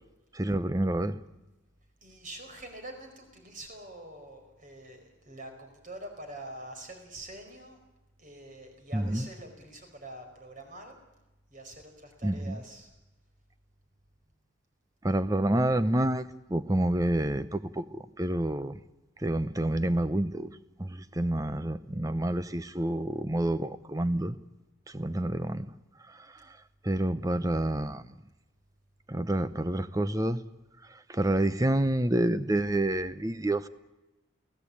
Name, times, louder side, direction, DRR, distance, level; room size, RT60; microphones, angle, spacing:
voice 1, 0.3-1.2 8.9-9.3 12.2-12.6 15.0-18.8 19.2-20.5 20.8-24.4 24.9-25.7 26.8-28.0 29.1-30.4 31.1-33.7, right 1 dB, 15° right, 0.8 m, -28 dB
voice 2, 2.0-7.8 8.2-10.9 11.5-12.9, right 1 dB, 40° right, 5.1 m, -45 dB
29.5 x 17.0 x 8.7 m
head